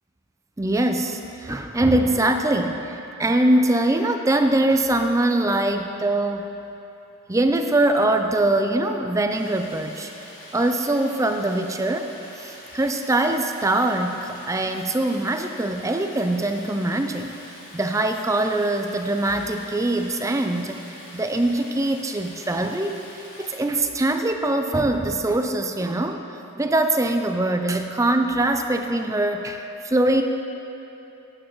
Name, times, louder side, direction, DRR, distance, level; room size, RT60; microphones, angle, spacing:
voice 1, 0.6-6.5 7.3-10.1 10.5-12.1 12.4-17.3 17.7-20.8 21.1-23.0 23.4-26.2 26.6-30.2, right 1 dB, 15° right, 5 dB, 0.4 m, -22 dB
Stream, 9.3-23.6, left 1 dB, 65° left, 2.8 m, -45 dB
20.0 x 8.8 x 3.1 m, 2.9 s
head